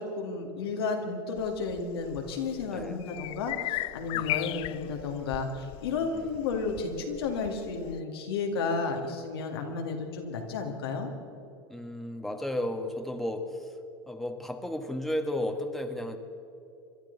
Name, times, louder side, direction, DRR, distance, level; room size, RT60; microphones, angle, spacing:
voice 1, 0.0-11.1, left 4 dB, 80° left, 2 dB, 2.2 m, -32 dB
sound 1, 1.4-8.0, left 18 dB, 45° left, 0.4 m, -38 dB
voice 2, 4.1-4.5 6.1-6.4 11.7-13.8 14.1-16.2, left 1 dB, ahead, 4 dB, 1.5 m, -34 dB
26.0 x 12.0 x 4.0 m, 2.7 s
hypercardioid pair, 90°, 13 cm